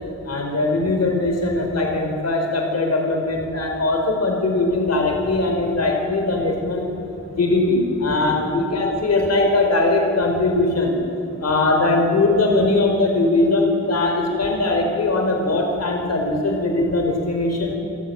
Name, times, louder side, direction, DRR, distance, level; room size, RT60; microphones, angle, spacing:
voice 1, 0.3-6.9 7.3-11.0 11.4-17.7, left 2 dB, 60° left, 2 dB, 4.8 m, -20 dB
26.0 x 16.0 x 8.9 m, 2.6 s
wide cardioid pair, 170°, 29 cm